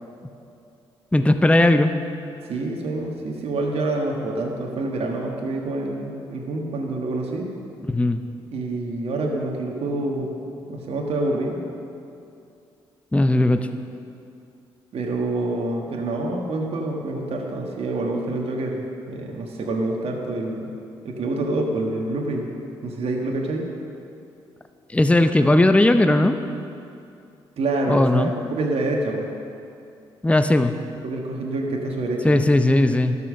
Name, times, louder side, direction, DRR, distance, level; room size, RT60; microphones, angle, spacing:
voice 1, 1.1-1.9 7.9-8.2 13.1-13.7 24.9-26.4 27.9-28.3 30.2-30.7 32.2-33.2, left 1 dB, 10° left, 8 dB, 0.6 m, -17 dB
voice 2, 2.5-7.5 8.5-10.3 10.7-11.7 14.9-20.7 21.0-22.5 22.8-23.7 27.6-29.2 31.0-32.4, right 2 dB, 60° right, 0 dB, 1.5 m, -27 dB
12.0 x 5.6 x 6.5 m, 2.6 s
hypercardioid pair, 50°, 12 cm